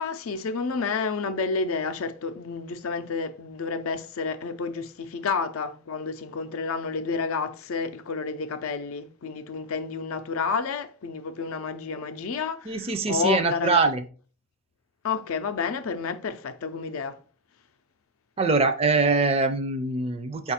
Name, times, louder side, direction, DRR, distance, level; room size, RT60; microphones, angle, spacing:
voice 1, 0.0-13.8 15.0-17.2, left 5 dB, 80° left, 0.5 m, -30 dB
voice 2, 12.7-14.0 18.4-20.5, right 4 dB, 30° right, 0.4 m, -23 dB
4.7 x 2.4 x 4.2 m
head